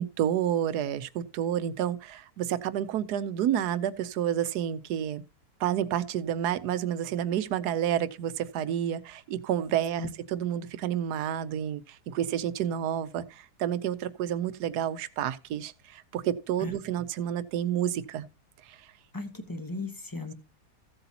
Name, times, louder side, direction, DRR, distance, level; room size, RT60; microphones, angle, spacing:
voice 1, 0.0-5.2 5.6-18.3 18.7-18.8, right 10 dB, 90° right, 1.2 m, -30 dB
voice 2, 19.1-20.3, left 3 dB, 15° left, 1.0 m, -36 dB
15.0 x 7.8 x 2.8 m
omnidirectional pair, 1.6 m